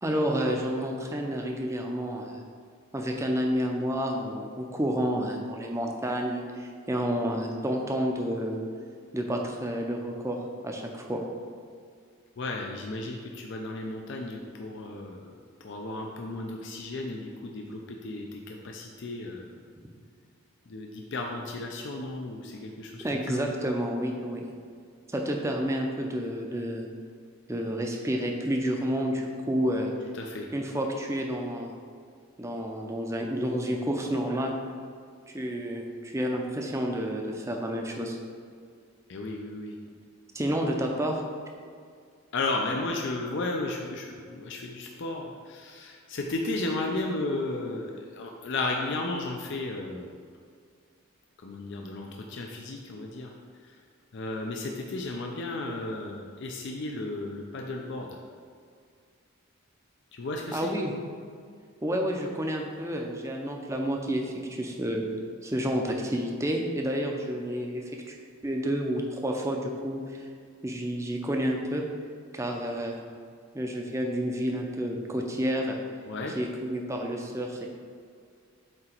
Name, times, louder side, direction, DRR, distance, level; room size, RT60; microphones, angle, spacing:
voice 1, 0.0-2.4 2.9-8.6 9.1-10.4 10.6-11.2 23.0-24.4 25.1-26.9 27.5-29.9 30.5-31.7 32.4-34.6 35.3-38.2 40.3-41.2 60.5-60.9 61.8-65.0 65.4-68.2 68.4-70.2 70.6-71.8 72.3-73.0 73.5-75.8 76.3-77.7, equal, 15° right, 1 dB, 0.5 m, -30 dB
voice 2, 12.4-15.2 15.6-19.4 20.7-23.4 30.1-30.5 39.1-39.7 42.3-50.1 51.4-53.3 54.1-58.2 60.1-60.7 76.1-76.4, left 2 dB, 55° left, 1 dB, 0.4 m, -34 dB
7.7 x 2.9 x 4.4 m, 2.2 s
head